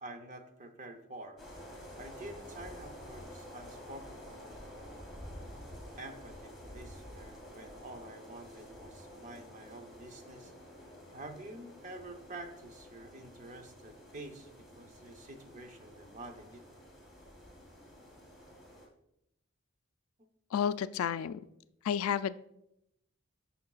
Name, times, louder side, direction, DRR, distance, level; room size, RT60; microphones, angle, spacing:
voice 1, 0.0-1.4 1.9-4.9 6.0-10.5 11.1-14.5 14.8-16.6 20.2-20.3, right 2 dB, 35° right, 7 dB, 0.7 m, -48 dB
sound 1, 1.4-18.9, equal, ahead, 1.9 m, -50 dB
voice 2, 20.5-21.4 21.8-22.4, left 8 dB, 90° left, 15 dB, 0.3 m, -31 dB
9.4 x 5.8 x 2.4 m, 0.81 s
head